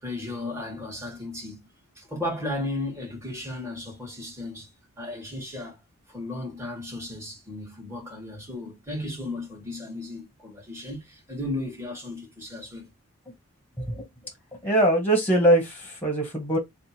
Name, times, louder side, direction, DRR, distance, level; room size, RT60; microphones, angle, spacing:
voice 1, 0.0-1.6 2.0-4.7 5.0-5.8 6.1-12.9, left 1 dB, 10° right, 1.9 m, -35 dB
voice 2, 13.8-14.1 14.5-16.6, right 1 dB, 10° left, 1.4 m, -22 dB
3.5 x 2.5 x 4.3 m
head